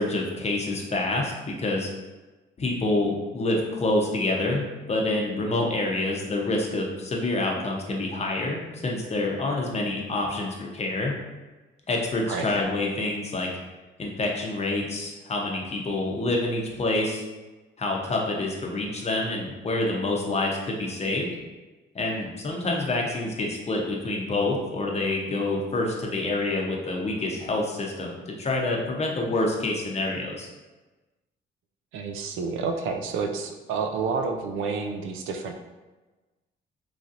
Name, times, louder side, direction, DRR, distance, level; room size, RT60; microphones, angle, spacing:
voice 1, 0.0-1.9 2.6-11.1 11.9-13.5 14.0-17.2 17.8-21.3 21.9-30.5, left 2 dB, 35° left, -1 dB, 0.6 m, -27 dB
voice 2, 31.9-35.5, right 5 dB, 85° right, 4 dB, 0.4 m, -29 dB
3.1 x 2.6 x 2.5 m, 1.2 s
cardioid pair, 90°, 20 cm